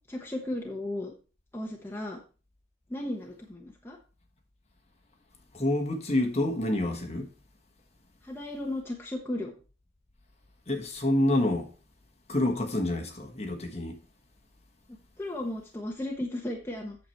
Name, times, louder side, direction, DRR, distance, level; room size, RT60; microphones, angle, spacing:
voice 1, 0.1-1.1 1.5-2.2 2.9-4.0 8.2-9.5 15.2-17.0, left 1 dB, 10° left, 1.0 m, -35 dB
voice 2, 5.5-7.3 10.7-11.7 12.3-14.0, left 1 dB, 35° left, 1.4 m, -27 dB
8.5 x 6.8 x 4.4 m
head